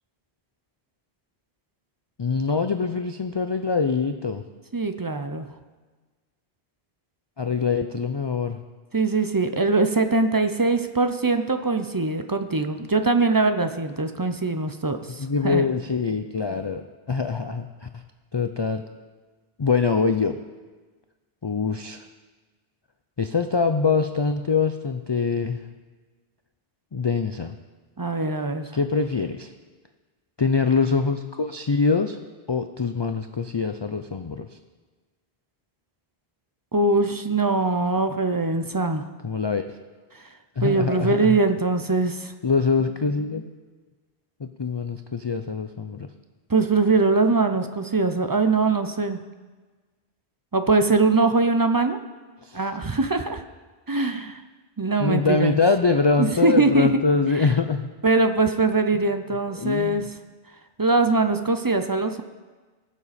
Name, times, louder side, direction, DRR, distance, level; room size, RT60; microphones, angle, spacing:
voice 1, 2.2-4.4 7.4-8.6 15.2-18.0 18.3-18.8 19.6-20.3 21.4-22.0 23.2-25.6 26.9-27.6 28.7-29.5 30.4-32.2 32.5-34.6 39.2-39.6 40.6-41.4 42.4-43.5 44.4-46.1 52.4-52.7 55.0-57.9 59.5-60.1, left 4 dB, 40° left, 7 dB, 0.4 m, -24 dB
voice 2, 4.7-5.5 8.9-15.6 28.0-28.7 36.7-39.0 40.6-42.3 46.5-49.2 50.5-52.0 52.5-53.4 53.9-54.4 54.8-55.6 56.2-56.9 58.0-60.0 60.8-62.2, right 3 dB, 25° right, 8 dB, 0.5 m, -22 dB
21.0 x 7.3 x 4.2 m, 1.3 s
omnidirectional pair, 1.1 m